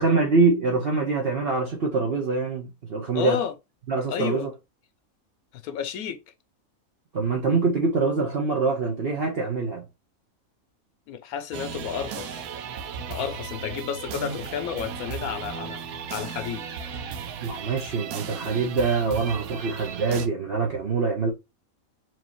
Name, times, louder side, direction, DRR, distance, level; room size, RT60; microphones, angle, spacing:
voice 1, 0.0-3.4 3.9-4.5 7.1-9.8 17.4-21.3, right 4 dB, 50° right, 1.0 m, -24 dB
voice 2, 3.1-3.5 4.1-4.5 5.6-6.2 11.1-12.5 13.1-15.8 16.1-16.6, left 8 dB, 85° left, 1.1 m, -31 dB
sound 1, 11.5-20.3, right 6 dB, 85° right, 1.1 m, -35 dB
4.6 x 2.8 x 2.9 m
omnidirectional pair, 1.5 m